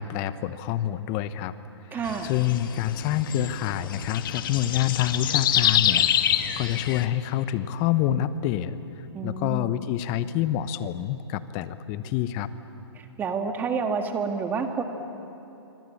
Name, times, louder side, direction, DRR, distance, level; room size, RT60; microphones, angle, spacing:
voice 1, 0.0-1.5 1.9-6.1 6.6-8.8 9.2-12.5, left 11 dB, 25° left, 14 dB, 0.9 m, -27 dB
voice 2, 1.9-2.3 9.1-9.7 12.9-14.8, right 5 dB, 15° right, 6 dB, 1.7 m, -29 dB
sound 1, 2.0-7.1, left 10 dB, 50° left, 1.3 m, -26 dB
26.5 x 24.5 x 8.6 m, 3.0 s
hypercardioid pair, 155°, 15 cm